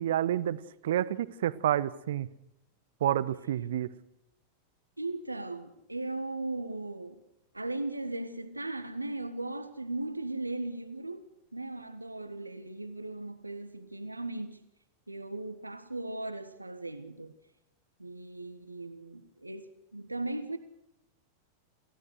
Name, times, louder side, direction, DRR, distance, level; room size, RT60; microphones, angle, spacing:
voice 1, 0.0-2.3 3.0-3.9, right 11 dB, 60° right, 1.0 m, -29 dB
voice 2, 5.0-7.2 7.5-11.3 11.5-14.7 15.1-17.3 18.0-20.6, right 2 dB, 85° right, 1.4 m, -37 dB
28.0 x 16.0 x 6.6 m
figure-of-eight pair, 90°, 0 cm